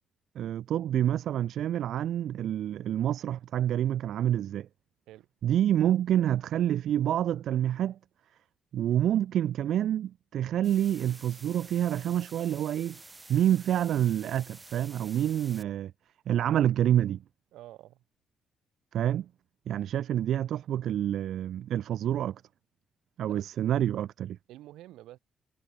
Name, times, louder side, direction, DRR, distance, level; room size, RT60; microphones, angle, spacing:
voice 1, 0.4-4.7 5.4-8.0 8.7-13.0 13.3-15.9 16.3-17.2 18.9-19.3 19.7-22.4 23.2-24.4, right 11 dB, 70° right, 0.4 m, -27 dB
sound 1, 10.6-15.6, right 2 dB, 20° right, 0.8 m, -50 dB
voice 2, 17.5-18.0 23.3-23.5 24.5-25.2, right 15 dB, 90° right, 3.1 m, -48 dB
cardioid pair, 90°, 0 cm